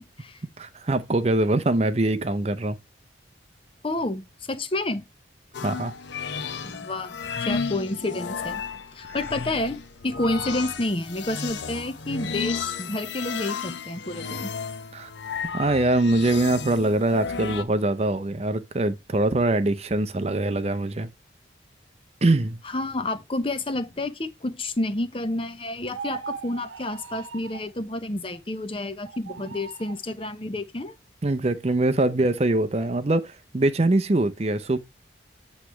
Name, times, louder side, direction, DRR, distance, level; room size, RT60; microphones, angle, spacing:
voice 1, 0.0-0.4 3.8-5.0 6.6-8.6 8.9-14.5 22.6-30.9, left 2 dB, 30° left, 0.6 m, -30 dB
voice 2, 0.6-2.8 5.6-5.9 14.9-15.1 15.5-21.1 22.2-22.6 31.2-34.8, right 2 dB, 35° right, 0.5 m, -23 dB
sound 1, 5.5-17.6, left 5 dB, 70° left, 0.7 m, -33 dB
sound 2, 25.9-27.7 29.0-30.0, right 6 dB, 90° right, 0.5 m, -38 dB
8.1 x 3.2 x 5.8 m
head